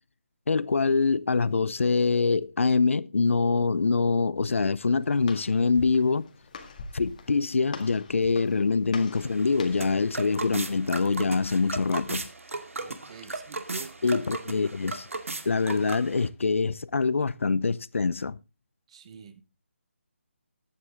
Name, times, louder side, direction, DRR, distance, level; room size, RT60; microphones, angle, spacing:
voice 1, 0.5-6.3 6.9-12.3 14.0-15.1 15.5-18.4, left 4 dB, 70° left, 0.6 m, -24 dB
Walk footsteps, 4.6-10.0, left 4 dB, 35° left, 1.9 m, -45 dB
sound 1, 9.2-16.3, right 3 dB, 80° right, 2.0 m, -36 dB
voice 2, 12.7-14.2 18.9-19.4, right 7 dB, 25° right, 1.1 m, -45 dB
14.5 x 9.5 x 3.6 m
hypercardioid pair, 170°, 7 cm